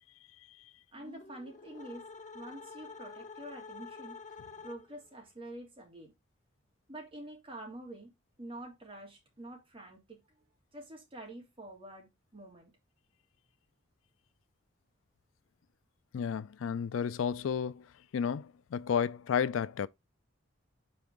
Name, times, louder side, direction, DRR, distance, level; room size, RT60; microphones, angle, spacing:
sound 1, 0.9-5.1, left 4 dB, 40° left, 0.8 m, -48 dB
voice 1, 0.9-2.1 2.3-4.2 4.6-6.1 6.9-8.1 8.4-10.2 10.7-12.7, right 1 dB, 25° right, 2.8 m, -47 dB
voice 2, 16.1-17.9 18.1-19.9, left 7 dB, 85° left, 0.4 m, -32 dB
5.4 x 4.3 x 4.7 m
head